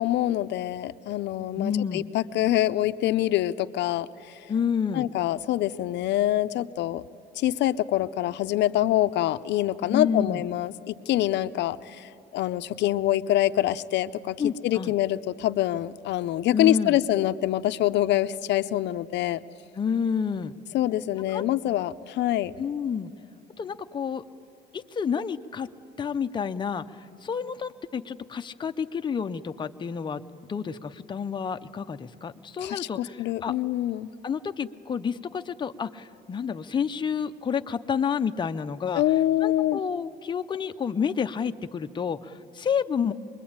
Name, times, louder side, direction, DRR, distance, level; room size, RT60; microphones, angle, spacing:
voice 1, 0.0-4.5 4.9-7.0 7.4-19.4 20.7-22.5 32.6-34.1 38.9-39.8, left 14 dB, 70° left, 13 dB, 0.6 m, -25 dB
voice 2, 1.6-2.0 4.5-5.1 9.9-10.4 14.4-14.9 16.5-17.0 19.8-20.5 21.3-21.4 22.6-23.1 23.6-24.2 24.7-25.7 26.0-26.8 27.2-30.2 30.5-33.5 34.2-39.0 39.4-43.1, left 6 dB, 25° left, 8 dB, 0.6 m, -29 dB
25.5 x 21.5 x 8.7 m, 2.7 s
cardioid pair, 140°, 19 cm